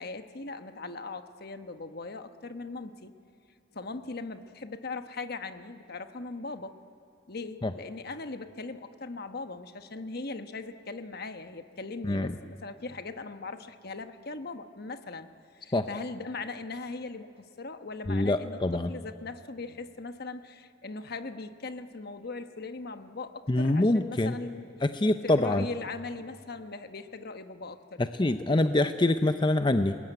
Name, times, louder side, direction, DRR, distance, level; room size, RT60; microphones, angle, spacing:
voice 1, 0.0-3.1 3.7-6.8 7.3-15.3 15.5-24.7 25.2-28.0 28.5-28.6, left 3 dB, 55° left, 9 dB, 1.2 m, -39 dB
voice 2, 12.0-12.3 15.7-15.9 18.1-18.9 23.5-24.3 24.8-25.7 28.0-30.0, left 2 dB, 25° left, 9 dB, 0.6 m, -25 dB
28.0 x 21.0 x 9.2 m, 2.5 s
head